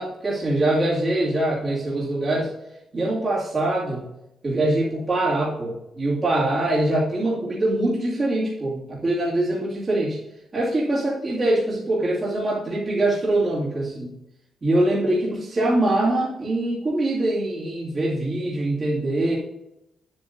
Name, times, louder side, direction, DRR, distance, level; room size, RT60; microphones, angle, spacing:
voice 1, 0.0-2.5 2.9-4.1 4.4-10.2 10.5-14.1 14.6-19.4, right 1 dB, 25° right, -7 dB, 2.3 m, -23 dB
9.6 x 7.8 x 2.6 m, 0.86 s
wide cardioid pair, 175°, 0 cm